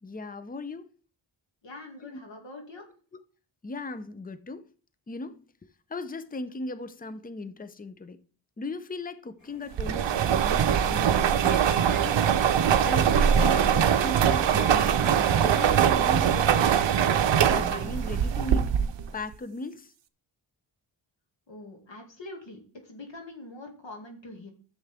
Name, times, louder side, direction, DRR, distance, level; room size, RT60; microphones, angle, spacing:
voice 1, 0.0-0.8 3.6-4.6 5.1-5.4 5.9-8.2 8.6-12.2 12.8-16.9 17.5-18.8 19.1-19.9, left 2 dB, 20° left, 0.6 m, -37 dB
voice 2, 1.6-2.9 21.5-24.5, left 2 dB, 65° left, 2.5 m, -44 dB
sound 1, 9.4-15.9, left 1 dB, 35° left, 4.2 m, -50 dB
sound 2, 9.8-19.1, right 8 dB, 65° right, 0.7 m, -22 dB
11.0 x 7.1 x 3.6 m
wide cardioid pair, 90°, 48 cm